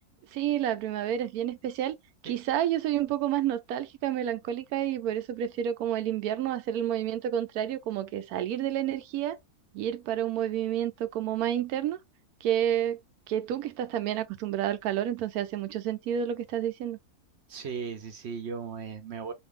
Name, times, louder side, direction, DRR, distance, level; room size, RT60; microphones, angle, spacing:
voice 1, 0.3-2.0 2.2-9.4 9.7-12.0 12.4-13.0 13.3-17.0, right 11 dB, 85° right, 1.1 m, -29 dB
voice 2, 17.5-19.3, right 6 dB, 60° right, 0.8 m, -37 dB
2.6 x 2.5 x 3.4 m
omnidirectional pair, 1.5 m